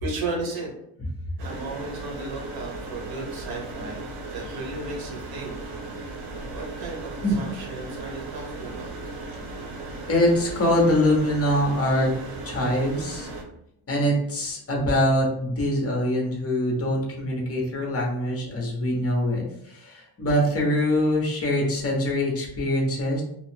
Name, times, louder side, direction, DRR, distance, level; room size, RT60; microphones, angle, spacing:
voice 1, 0.0-0.7 1.4-4.0 4.3-5.5 6.5-8.9, right 3 dB, 55° right, -1 dB, 1.1 m, -34 dB
sound 1, 1.4-13.4, right 2 dB, 75° right, 0.8 m, -37 dB
voice 2, 10.1-12.1 12.4-13.3 13.9-23.2, left 1 dB, 30° left, -1 dB, 1.0 m, -23 dB
2.8 x 2.3 x 3.5 m, 0.74 s
cardioid pair, 130°, 43 cm